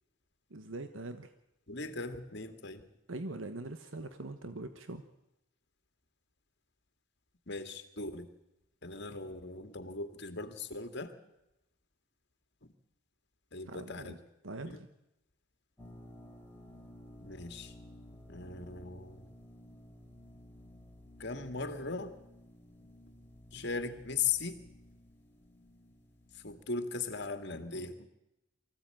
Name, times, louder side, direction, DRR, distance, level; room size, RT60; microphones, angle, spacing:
voice 1, 0.5-1.3 3.1-5.0 13.7-14.2 14.4-14.8, right 2 dB, 85° right, 9 dB, 1.2 m, -42 dB
voice 2, 1.7-2.8 7.5-8.3 8.8-11.1 13.5-14.2 14.6-14.8 17.2-17.7 18.3-19.3 21.2-22.2 23.5-24.6 26.3-28.1, left 4 dB, 60° left, 8 dB, 2.1 m, -38 dB
sound 1, 15.8-26.6, left 1 dB, 10° left, 3.8 m, -54 dB
24.0 x 15.5 x 9.0 m, 0.91 s
head